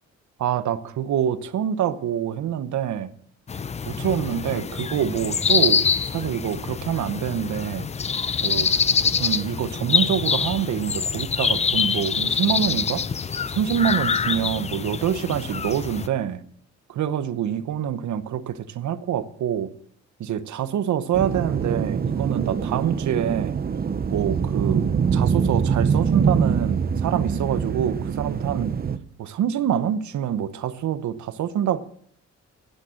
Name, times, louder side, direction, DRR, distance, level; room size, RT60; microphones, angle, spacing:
voice 1, 0.4-3.1 3.8-7.9 8.4-13.0 13.5-16.4 16.9-19.7 20.2-23.6 24.1-28.8 29.2-31.8, right 9 dB, 80° right, 1.1 m, -26 dB
sound 1, 3.5-16.1, left 6 dB, 25° left, 0.5 m, -25 dB
sound 2, 21.1-29.0, right 6 dB, 30° right, 0.8 m, -24 dB
11.5 x 10.0 x 7.6 m
wide cardioid pair, 155°, 29 cm